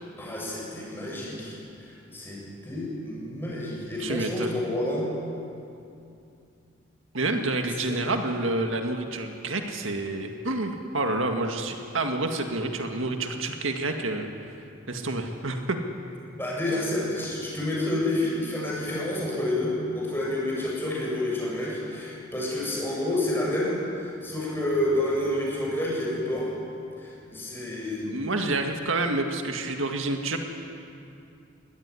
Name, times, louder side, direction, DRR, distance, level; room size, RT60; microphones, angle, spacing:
voice 1, 0.2-5.1 7.9-8.0 16.3-26.5 27.0-28.2, left 1 dB, 10° left, -4 dB, 7.1 m, -29 dB
voice 2, 4.0-4.6 7.1-14.5 14.9-15.8 28.1-30.4, right 2 dB, 80° right, 4 dB, 1.9 m, -28 dB
22.5 x 18.0 x 9.9 m, 2.6 s
head